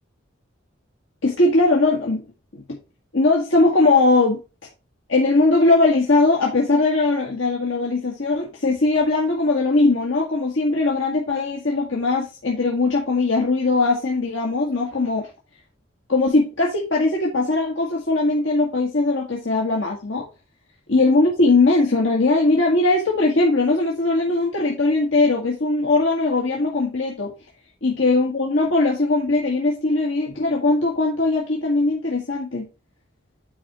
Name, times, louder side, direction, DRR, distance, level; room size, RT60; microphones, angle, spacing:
voice 1, 1.2-2.2 2.5-2.8 3.1-4.4 5.1-15.3 16.1-20.3 20.9-27.3 27.8-32.7, left 2 dB, 85° left, -1 dB, 1.7 m, -20 dB
9.6 x 5.1 x 3.0 m, 0.29 s
head